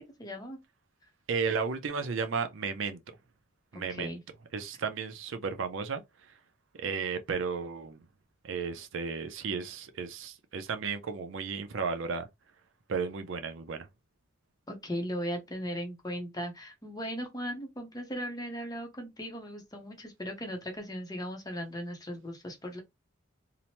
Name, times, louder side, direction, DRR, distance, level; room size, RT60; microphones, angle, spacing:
voice 1, 0.2-0.6 3.7-4.2 14.7-22.8, equal, 20° left, 0.7 m, -37 dB
voice 2, 1.3-3.0 3.7-4.2 4.5-6.0 6.7-8.0 8.4-12.3 12.9-13.9, right 5 dB, 65° right, 0.4 m, -33 dB
2.8 x 2.1 x 2.9 m
head